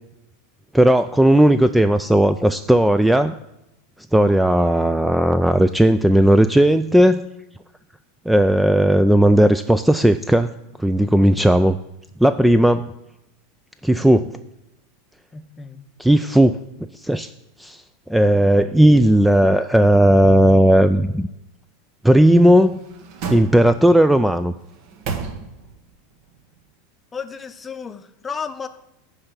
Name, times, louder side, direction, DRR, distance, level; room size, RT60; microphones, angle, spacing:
voice 1, 0.7-3.3 4.1-7.3 8.3-10.5 10.8-11.8 12.2-12.9 13.8-14.3 16.0-16.6 17.0-17.3 17.6-17.8 18.1-21.3 22.0-22.8 23.3-24.5, right 1 dB, 5° right, 11 dB, 0.3 m, -15 dB
voice 2, 15.3-15.8 27.1-28.7, left 6 dB, 20° left, 11 dB, 0.7 m, -33 dB
sound 1, 22.3-24.0 24.6-25.9 26.2-26.3, right 5 dB, 55° right, 1.2 m, -33 dB
9.7 x 3.3 x 6.9 m, 0.87 s
hypercardioid pair, 100°, 0 cm